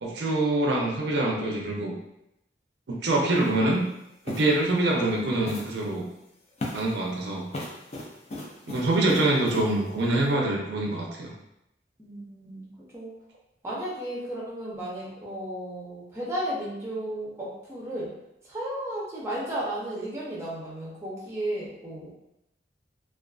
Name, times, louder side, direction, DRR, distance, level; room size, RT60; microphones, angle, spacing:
voice 1, 0.0-1.9 2.9-3.8 4.3-6.1 6.7-7.5 8.7-11.3, right 2 dB, 75° right, -2 dB, 0.5 m, -25 dB
sound 1, 3.4-3.5 4.3-4.6 5.4-5.9 6.6-7.0 7.5-9.7, left 1 dB, 35° left, 0.4 m, -37 dB
voice 2, 12.0-12.7 12.9-13.1 13.6-18.1 18.4-22.1, right 1 dB, 15° right, -6 dB, 0.5 m, -34 dB
2.4 x 2.3 x 2.3 m, 0.86 s
head